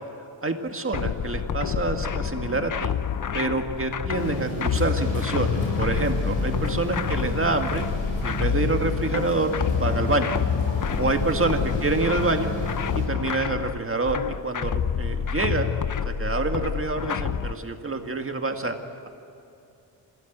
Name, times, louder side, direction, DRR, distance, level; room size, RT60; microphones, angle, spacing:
voice 1, 0.4-3.0 3.3-7.9 8.2-9.5 9.8-10.3 11.0-12.5 12.9-15.7 16.1-18.7, right 3 dB, 30° right, 5 dB, 1.9 m, -27 dB
sound 1, 0.9-17.5, left 7 dB, 45° left, 0.8 m, -28 dB
sound 2, 4.1-13.1, left 1 dB, 90° left, 6.6 m, -31 dB
27.5 x 16.5 x 8.1 m, 2.9 s
wide cardioid pair, 105°, 46 cm